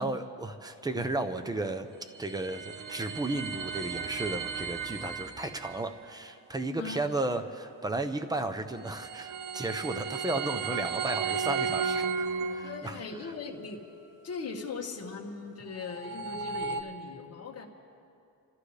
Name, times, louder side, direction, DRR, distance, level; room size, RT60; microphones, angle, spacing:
voice 1, 0.0-1.9 2.2-13.0, right 2 dB, 10° right, 8 dB, 0.6 m, -34 dB
sound 1, 1.8-5.8 8.6-13.1 15.6-16.8, right 6 dB, 60° right, 1.0 m, -34 dB
voice 2, 6.8-7.1 12.6-13.8 14.2-17.7, left 4 dB, 40° left, 0 dB, 1.5 m, -39 dB
28.0 x 14.0 x 3.3 m, 2.6 s
wide cardioid pair, 170°, 36 cm